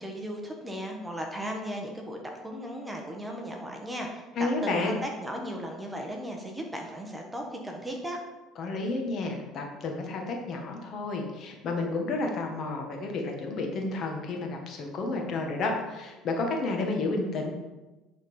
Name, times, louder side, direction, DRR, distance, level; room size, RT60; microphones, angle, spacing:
voice 1, 0.0-8.2, equal, 10° right, 1 dB, 1.3 m, -36 dB
voice 2, 4.4-4.9 8.6-17.5, left 3 dB, 45° left, 2 dB, 1.7 m, -31 dB
9.7 x 4.4 x 5.5 m, 1.1 s
cardioid pair, 125°, 0 cm